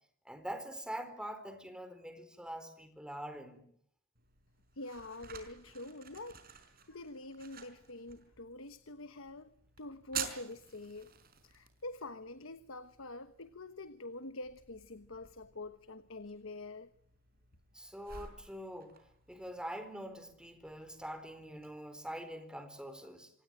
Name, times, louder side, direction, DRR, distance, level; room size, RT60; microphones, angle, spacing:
voice 1, 0.2-3.6 17.7-19.0 19.3-23.3, equal, 5° right, 4.3 m, -44 dB
sound 1, 4.2-21.7, right 8 dB, 45° right, 5.0 m, -51 dB
voice 2, 4.7-6.4 6.9-11.2 11.4-16.9, left 2 dB, 65° left, 1.2 m, -46 dB
26.5 x 24.0 x 8.9 m
head